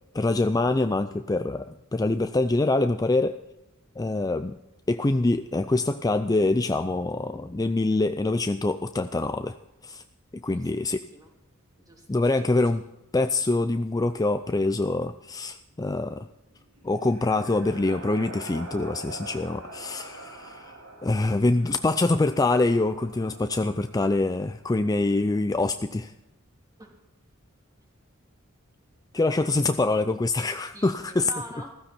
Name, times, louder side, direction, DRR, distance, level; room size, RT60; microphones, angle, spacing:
voice 1, 0.1-3.4 4.0-4.6 4.9-9.5 9.8-10.0 10.3-11.1 12.1-12.8 13.1-16.3 16.8-20.7 21.0-26.1 29.1-31.3, left 2 dB, 15° left, 9 dB, 0.4 m, -25 dB
voice 2, 10.5-11.3 11.8-12.6 26.8-27.0 29.1-29.6 30.2-31.7, right 1 dB, 15° right, 1 dB, 3.3 m, -46 dB
sound 1, 16.6-24.4, right 2 dB, 90° right, 3.2 m, -44 dB
15.0 x 15.0 x 4.4 m, 0.94 s
head